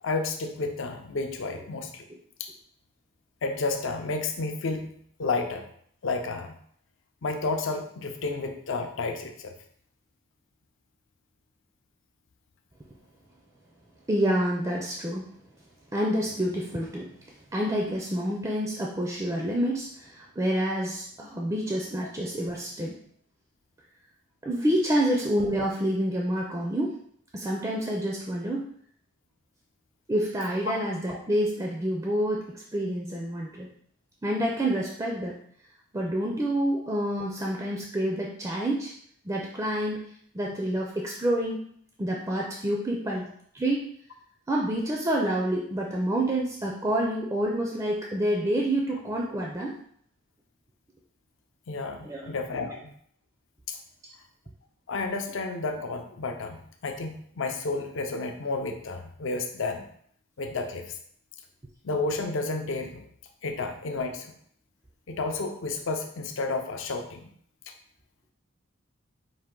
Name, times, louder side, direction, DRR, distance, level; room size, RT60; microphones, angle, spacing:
voice 1, 0.0-2.0 2.4-2.5 3.4-5.6 6.0-6.6 7.2-9.5 51.7-52.9 53.7-53.8 54.9-59.8 60.4-60.9 61.8-63.1 63.4-64.3 65.1-67.3, left 3 dB, 70° left, 5 dB, 0.5 m, -31 dB
voice 2, 14.1-15.3 15.9-23.0 24.4-27.0 27.3-28.6 30.1-33.7 34.2-35.4 35.9-38.9 39.2-40.1 40.3-41.7 42.0-43.9 44.5-49.7 52.0-52.3, right 1 dB, 15° right, -1 dB, 0.4 m, -28 dB
4.8 x 2.5 x 3.7 m, 0.64 s
head